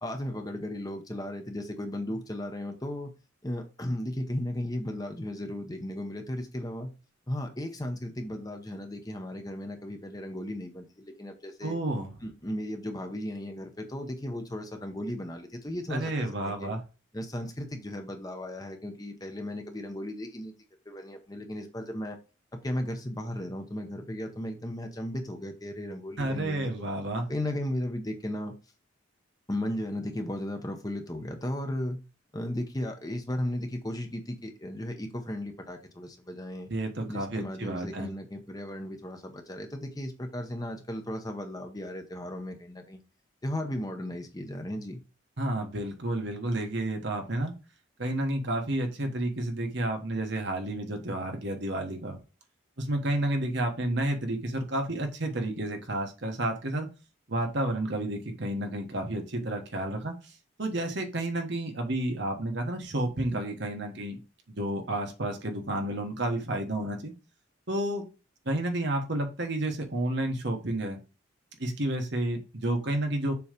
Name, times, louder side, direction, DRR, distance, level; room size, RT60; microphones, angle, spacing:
voice 1, 0.0-3.1 3.4-6.9 7.3-11.8 12.2-16.7 17.1-20.5 20.9-22.2 22.6-26.9 27.3-28.5 29.5-32.0 32.3-36.7 37.1-43.0 43.4-45.0, left 1 dB, 20° left, 5 dB, 0.8 m, -35 dB
voice 2, 11.6-12.1 15.9-16.8 26.2-27.3 36.7-38.1 45.4-47.5 48.0-52.2 52.8-56.9 57.3-60.3 60.6-64.2 64.5-67.1 67.7-68.0 68.4-71.0 71.6-73.3, right 1 dB, 55° right, 3 dB, 1.3 m, -31 dB
6.9 x 3.1 x 5.1 m, 0.32 s
head